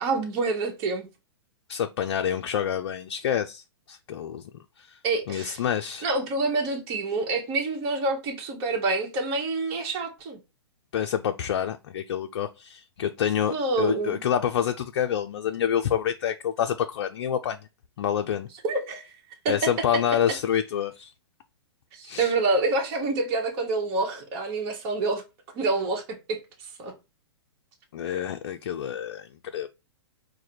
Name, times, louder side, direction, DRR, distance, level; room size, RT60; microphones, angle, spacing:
voice 1, 0.0-1.1 5.0-5.6 6.0-10.4 13.5-14.2 18.6-19.1 19.4-20.0 21.9-25.2 25.5-26.0 26.3-26.4 26.8-26.9, right 3 dB, 35° right, 1.1 m, -27 dB
voice 2, 1.7-4.4 4.8-5.0 5.3-6.1 10.9-17.6 18.0-18.5 19.5-21.1 22.0-22.3 27.9-29.7, left 9 dB, 55° left, 0.4 m, -27 dB
4.8 x 2.2 x 4.3 m
figure-of-eight pair, 115°, 14 cm